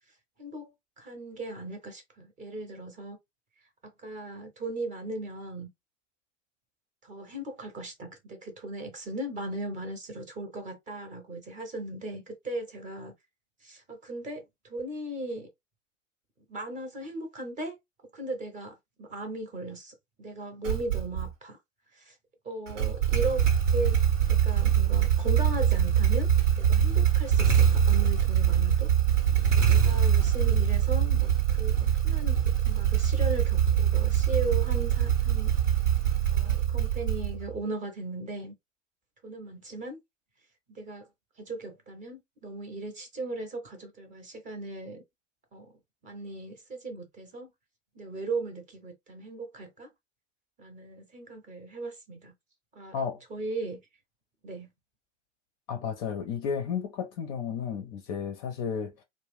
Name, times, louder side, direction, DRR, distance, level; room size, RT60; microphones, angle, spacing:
voice 1, 0.4-3.2 3.8-5.7 7.0-13.1 13.6-15.5 16.5-17.8 18.1-21.6 21.9-22.2 22.4-24.0 24.3-26.3 26.6-28.9 29.7-35.5 36.3-38.5 39.2-40.0 40.7-41.1 41.4-45.0 45.5-45.7 46.0-47.5 47.9-49.9 50.6-52.3 52.7-53.0 53.3-53.8 54.4-54.7, right 2 dB, 20° right, 0.7 m, -37 dB
Motorcycle / Engine starting, 20.6-21.3 22.7-37.6, right 9 dB, 75° right, 1.0 m, -24 dB
voice 2, 55.7-59.0, left 7 dB, 30° left, 0.4 m, -33 dB
2.4 x 2.0 x 3.3 m
figure-of-eight pair, 100°, 37 cm